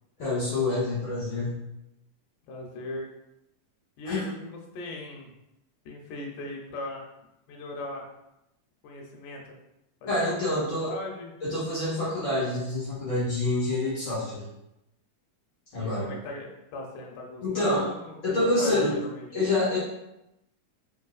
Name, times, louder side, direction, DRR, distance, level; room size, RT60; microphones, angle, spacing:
voice 1, 0.2-1.6 4.0-4.2 10.1-10.9 11.4-14.5 15.7-16.1 17.4-17.9 18.2-19.0 19.3-19.8, left 2 dB, 60° left, -10 dB, 1.2 m, -27 dB
voice 2, 2.5-3.1 4.0-5.3 5.9-7.1 7.5-8.1 8.8-9.6 10.0-10.5 10.8-11.3 15.7-19.3, left 2 dB, 80° left, 0 dB, 2.0 m, -38 dB
4.8 x 2.7 x 2.4 m, 0.88 s
omnidirectional pair, 3.7 m